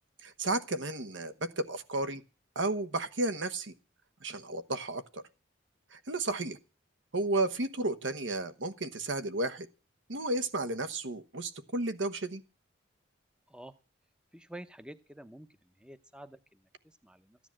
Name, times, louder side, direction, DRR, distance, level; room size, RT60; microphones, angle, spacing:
voice 1, 0.2-2.2 2.5-3.7 4.2-5.2 5.9-6.6 7.1-9.7 10.1-12.4, right 2 dB, 70° right, 13 dB, 1.1 m, -33 dB
voice 2, 14.3-17.4, right 1 dB, 5° right, 12 dB, 0.7 m, -49 dB
15.0 x 10.0 x 7.4 m, 0.34 s
head